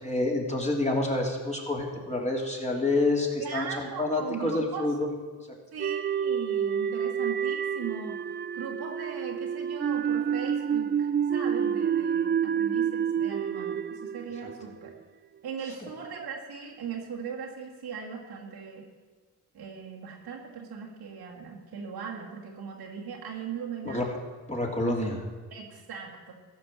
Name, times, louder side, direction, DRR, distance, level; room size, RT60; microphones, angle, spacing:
voice 1, 0.0-5.1 23.8-24.1 24.5-25.2, left 2 dB, 15° left, -1 dB, 3.0 m, -28 dB
voice 2, 3.4-5.0 5.7-8.2 8.5-14.9 15.4-18.8 19.5-24.1 25.5-26.3, right 6 dB, 75° right, -2 dB, 2.4 m, -39 dB
sound 1, 5.8-15.0, right 8 dB, 30° right, 0.4 m, -28 dB
14.5 x 6.0 x 7.4 m, 1.4 s
cardioid pair, 60°, 38 cm